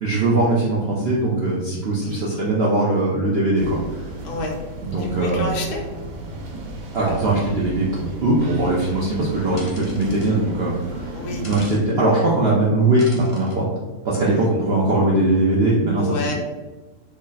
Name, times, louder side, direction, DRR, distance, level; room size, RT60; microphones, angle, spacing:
voice 1, 0.0-3.8 4.8-5.6 6.9-11.1 11.5-13.7 14.0-16.2, right 2 dB, 65° right, -5 dB, 0.6 m, -20 dB
sound 1, 3.5-11.8, right 1 dB, 90° right, 1.3 m, -34 dB
voice 2, 4.2-4.5 4.9-5.8 11.1-11.4 14.3-14.5 16.0-16.3, left 2 dB, 75° left, 1 dB, 1.2 m, -29 dB
sound 2, 9.6-10.3 11.4-11.8 13.0-13.6, left 1 dB, 50° left, 0.4 m, -40 dB
3.1 x 2.5 x 3.9 m, 1.2 s
omnidirectional pair, 1.7 m